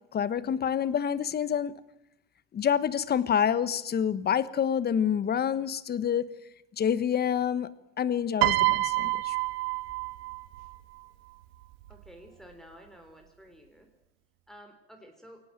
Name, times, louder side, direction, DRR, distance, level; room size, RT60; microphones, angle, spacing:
voice 1, 0.1-1.7 2.5-6.3 6.8-7.7 8.0-9.3, left 8 dB, 30° left, 16 dB, 1.3 m, -27 dB
Piano, 8.4-10.8 11.8-12.1, right 19 dB, 80° right, 1.5 m, -27 dB
voice 2, 11.9-13.9 14.5-15.4, equal, ahead, 2 dB, 3.6 m, -51 dB
22.5 x 18.0 x 9.1 m, 0.87 s
supercardioid pair, 105°, 30 cm